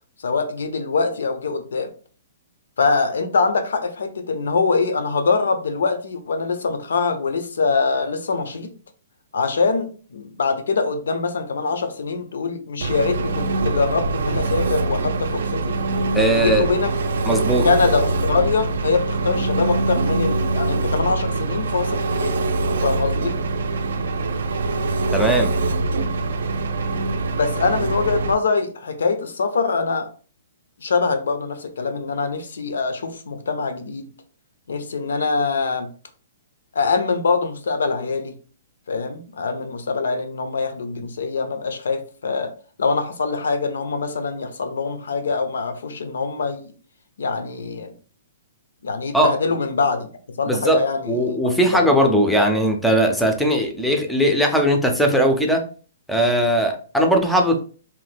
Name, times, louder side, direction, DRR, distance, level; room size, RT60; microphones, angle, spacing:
voice 1, 0.2-1.9 2.8-8.7 9.3-15.8 16.3-17.1 17.6-22.4 22.8-23.4 27.3-30.1 30.8-34.1 34.7-35.9 36.7-38.3 38.9-42.5 42.8-46.7 47.2-47.9 48.8-50.1 50.4-51.4 51.7-52.1 52.4-52.5, left 4 dB, 90° left, 0.6 m, -23 dB
Engine, 12.8-28.3, right 3 dB, 75° right, 0.4 m, -23 dB
voice 2, 16.1-16.7 17.3-17.7 25.1-25.5 49.1-49.3 50.5-50.8 51.1-55.6 56.1-57.6, right 1 dB, ahead, 0.4 m, -19 dB
2.9 x 2.1 x 3.3 m
hypercardioid pair, 165°, 0 cm